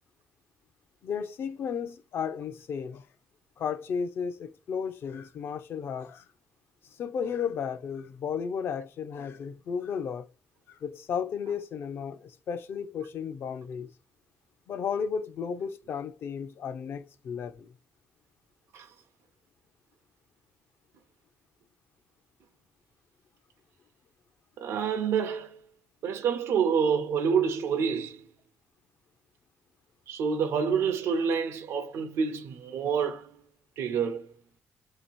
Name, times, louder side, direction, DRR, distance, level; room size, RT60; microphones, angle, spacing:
voice 1, 1.0-3.1 3.6-6.2 7.0-10.3 10.7-13.9 14.7-17.7, left 7 dB, 60° left, 0.5 m, -34 dB
voice 2, 24.6-25.6 26.0-28.2 30.1-33.3 33.8-34.3, right 6 dB, 85° right, 0.6 m, -27 dB
3.3 x 2.8 x 4.5 m
cardioid pair, 125°, 4 cm